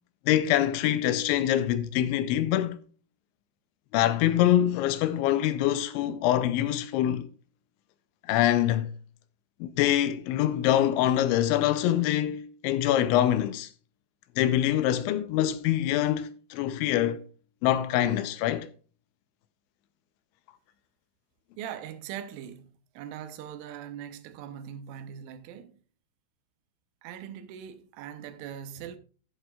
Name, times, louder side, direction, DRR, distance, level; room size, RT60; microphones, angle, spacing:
voice 1, 0.3-2.8 3.9-7.3 8.3-8.9 9.6-13.7 14.4-17.2 17.6-18.7, left 12 dB, 80° left, 2.8 m, -24 dB
voice 2, 21.6-25.7 27.0-29.0, right 9 dB, 85° right, 3.4 m, -41 dB
11.0 x 11.0 x 2.3 m
omnidirectional pair, 5.5 m